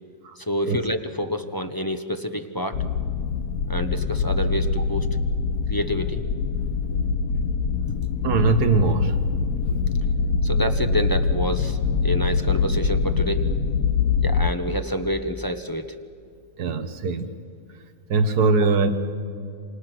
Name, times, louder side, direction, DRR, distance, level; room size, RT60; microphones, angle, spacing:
voice 1, 0.4-2.8 3.7-5.1 5.7-6.2 6.9-7.1 9.7-13.6 13.8-13.9 14.2-15.9, equal, 15° left, 7 dB, 0.9 m, -28 dB
sound 1, 2.7-14.5, left 5 dB, 70° left, 1.3 m, -24 dB
voice 2, 8.2-9.2 16.6-17.3 18.1-18.9, right 4 dB, 80° right, 8 dB, 1.9 m, -21 dB
28.0 x 27.0 x 6.1 m, 2.3 s
omnidirectional pair, 1.7 m